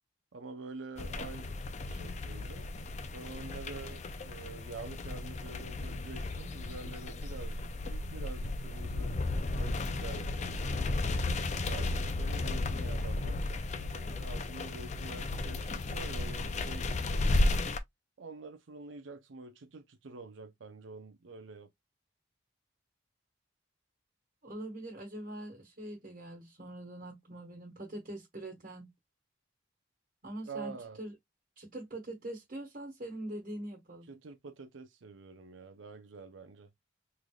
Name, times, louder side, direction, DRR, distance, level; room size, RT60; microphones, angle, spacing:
voice 1, 0.3-1.6 1.9-2.7 3.1-9.1 9.6-11.1 11.5-17.5 18.2-21.7 30.4-31.0 34.1-36.7, right 4 dB, 85° right, 0.6 m, -47 dB
sound 1, 1.0-17.8, left 2 dB, 40° left, 0.4 m, -34 dB
voice 2, 24.4-28.9 30.2-31.1 31.6-34.1, right 1 dB, 45° right, 1.2 m, -43 dB
3.8 x 3.3 x 2.3 m
head